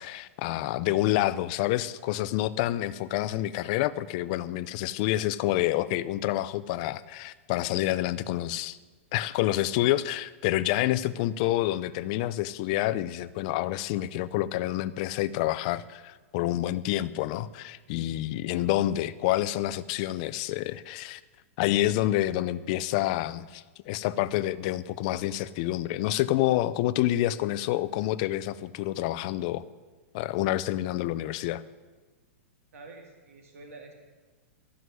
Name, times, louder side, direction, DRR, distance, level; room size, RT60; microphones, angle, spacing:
voice 1, 0.0-8.8 9.1-21.2 21.6-29.6 30.1-31.6, left 15 dB, 30° left, 13 dB, 0.4 m, -28 dB
voice 2, 32.7-33.9, right 3 dB, 90° right, 3 dB, 2.0 m, -47 dB
13.5 x 6.2 x 9.4 m, 1.3 s
supercardioid pair, 175°, 8 cm